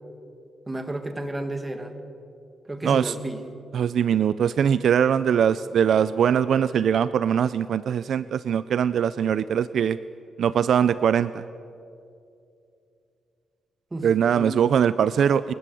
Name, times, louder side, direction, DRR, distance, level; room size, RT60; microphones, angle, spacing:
voice 1, 0.7-1.9 2.7-3.4 13.9-14.1 14.3-14.6, right 1 dB, 20° right, 8 dB, 2.1 m, -32 dB
voice 2, 2.8-3.1 3.7-10.0 10.4-11.4 14.0-15.5, right 8 dB, 70° right, 16 dB, 0.4 m, -22 dB
26.5 x 13.0 x 8.4 m, 2.6 s
cardioid pair, 95°, 0 cm